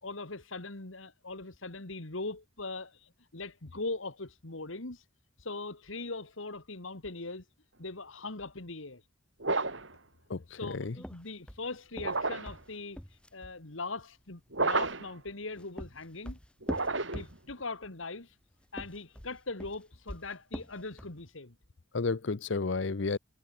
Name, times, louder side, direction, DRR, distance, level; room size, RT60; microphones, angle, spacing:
voice 1, 0.0-3.0 3.3-5.1 5.4-7.5 7.8-9.0 10.5-13.0 13.3-16.4 17.1-18.4 18.7-21.5, left 3 dB, 80° left, 2.3 m, -40 dB
sound 1, 9.4-10.0 12.0-12.6 14.5-15.2 16.6-17.4, right 3 dB, 70° right, 5.6 m, -31 dB
voice 2, 10.3-10.9 21.9-23.2, left 4 dB, 65° left, 0.7 m, -32 dB
sound 2, 11.0-13.6 15.3-17.7 18.6-21.2, equal, 5° left, 5.2 m, -43 dB
head